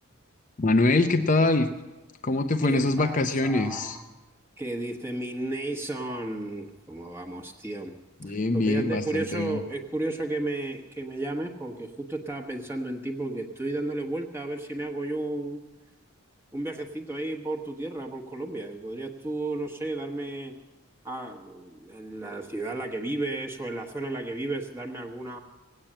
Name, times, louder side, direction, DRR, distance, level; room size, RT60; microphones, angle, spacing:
voice 1, 0.6-1.7 2.2-4.0 8.2-9.6, left 2 dB, 35° left, 6 dB, 0.6 m, -24 dB
voice 2, 2.6-4.1 4.6-7.9 8.2-15.6 16.5-20.5 21.0-25.4, right 2 dB, 10° right, 0 dB, 1.2 m, -33 dB
18.0 x 8.9 x 8.7 m, 1.2 s
head